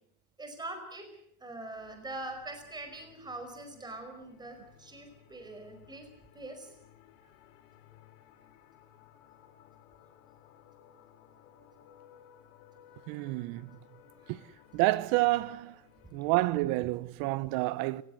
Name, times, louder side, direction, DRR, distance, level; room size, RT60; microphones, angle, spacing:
voice 1, 0.4-1.1 1.4-6.1 6.3-6.7 7.2-7.3 14.2-14.3, right 2 dB, 10° right, 5.2 m, -43 dB
sound 1, 1.7-16.7, left 10 dB, 60° left, 4.9 m, -59 dB
voice 2, 13.1-13.7 14.3-14.4 14.7-15.8 16.1-18.0, right 19 dB, 50° right, 1.0 m, -29 dB
29.5 x 16.0 x 8.0 m
supercardioid pair, 145°, 44 cm